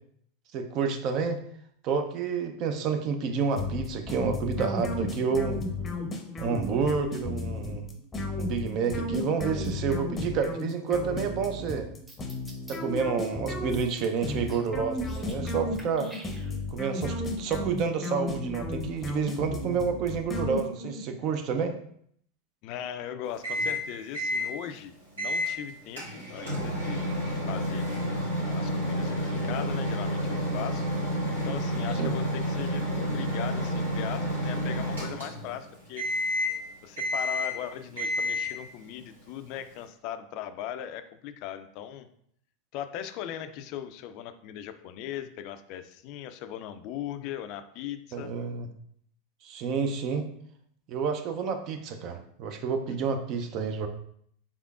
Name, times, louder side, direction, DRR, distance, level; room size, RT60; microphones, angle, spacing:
voice 1, 0.5-1.4 1.8-5.6 6.4-7.9 8.4-11.9 12.7-16.1 16.7-21.8 32.0-32.2 48.1-48.7 49.4-50.3 50.9-53.9, right 5 dB, 50° right, 7 dB, 0.5 m, -29 dB
sound 1, 3.6-21.1, left 2 dB, 20° left, 0.6 m, -34 dB
sound 2, 12.1-12.8 13.7-14.7 14.9-15.5 15.8-16.8, right 1 dB, 10° right, 0.9 m, -49 dB
voice 2, 22.6-27.8 28.4-30.9 31.3-36.1 36.8-42.1 42.7-48.3, left 10 dB, 55° left, 10 dB, 0.3 m, -39 dB
Microwave oven, 23.4-23.8 24.1-24.5 25.2-25.5 26.0-35.6 36.0-36.6 37.0-37.6 38.0-38.6, equal, 85° right, 1.3 m, -30 dB
3.6 x 3.4 x 2.4 m, 0.66 s
hypercardioid pair, 95°, 0 cm